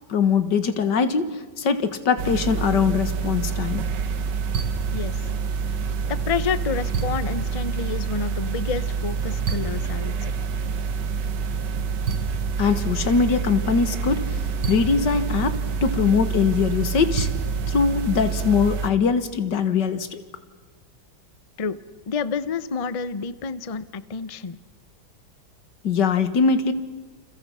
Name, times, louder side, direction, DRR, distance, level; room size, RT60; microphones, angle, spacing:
voice 1, 0.1-3.8 12.6-14.3 14.7-17.3 17.7-20.2 25.8-26.7, left 5 dB, 85° left, 11 dB, 2.2 m, -22 dB
sound 1, 2.2-18.9, right 5 dB, 90° right, 1.9 m, -27 dB
voice 2, 6.1-10.3 21.6-21.8 22.1-24.6, left 5 dB, 30° left, 15 dB, 0.6 m, -29 dB
29.5 x 28.5 x 5.6 m, 1.4 s
omnidirectional pair, 1.8 m